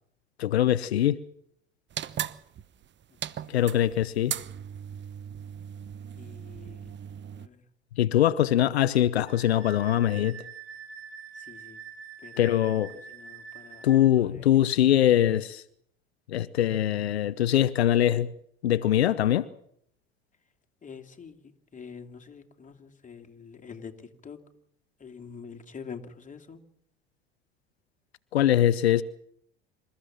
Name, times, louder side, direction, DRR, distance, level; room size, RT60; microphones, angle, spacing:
voice 1, 0.4-1.2 3.5-4.3 8.0-10.4 12.4-12.9 13.8-15.6 16.3-18.3 18.6-19.5 28.3-29.0, left 12 dB, 85° left, 0.8 m, -22 dB
sound 1, 1.9-7.5, right 9 dB, 35° right, 1.1 m, -38 dB
voice 2, 6.2-6.9 7.3-7.6 11.5-11.8 12.2-12.3 12.7-12.8 13.1-13.8 14.2-14.4 20.8-21.4 21.7-23.9 24.2-24.4 25.0-26.6, left 6 dB, 25° left, 2.8 m, -45 dB
Wind instrument woodwind instrument, 9.3-14.0, right 6 dB, 70° right, 5.7 m, -45 dB
27.5 x 14.5 x 7.4 m
hypercardioid pair, 70°, 31 cm